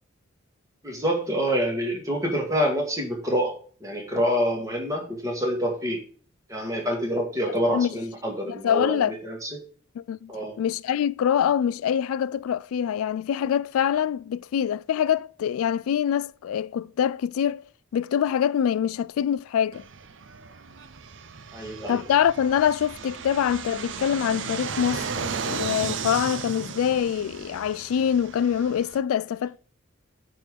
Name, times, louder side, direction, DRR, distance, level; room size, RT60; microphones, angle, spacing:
voice 1, 0.8-6.0 6.5-9.5 10.3-10.6 21.5-22.0, equal, 15° right, 2.0 m, -27 dB
voice 2, 8.5-9.1 10.0-10.3 10.6-17.6 17.9-19.8 21.9-29.6, left 8 dB, 85° left, 0.3 m, -25 dB
Fixed-wing aircraft airplane, 19.7-29.0, right 6 dB, 60° right, 0.6 m, -35 dB
9.0 x 3.8 x 6.4 m
head